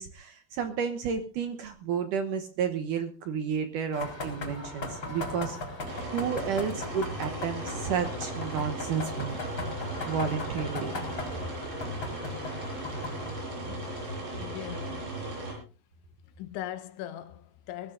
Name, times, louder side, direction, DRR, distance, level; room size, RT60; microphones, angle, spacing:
voice 1, 0.0-5.8 6.1-9.4 10.1-10.9, right 7 dB, 80° right, 1.8 m, -31 dB
sound 1, 3.9-13.3, left 2 dB, 25° left, 4.2 m, -38 dB
sound 2, 5.8-15.5, right 1 dB, 65° right, 8.4 m, -37 dB
voice 2, 13.6-15.2 16.4-17.9, left 12 dB, 85° left, 3.4 m, -41 dB
22.0 x 16.0 x 2.6 m
omnidirectional pair, 5.2 m